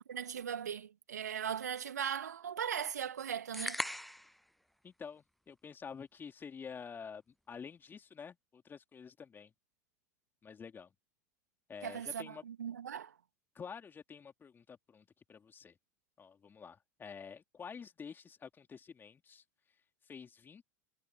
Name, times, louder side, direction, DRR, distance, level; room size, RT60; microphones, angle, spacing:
voice 1, 0.1-3.8 11.8-13.2, right 8 dB, 75° right, 2.5 m, -38 dB
sound 1, 3.5-4.4, equal, ahead, 0.6 m, -38 dB
voice 2, 4.8-9.5 10.4-10.9 11.7-12.4 13.5-15.8 16.2-19.4 20.0-20.6, left 6 dB, 25° left, 3.0 m, -49 dB
figure-of-eight pair, 80°, 9 cm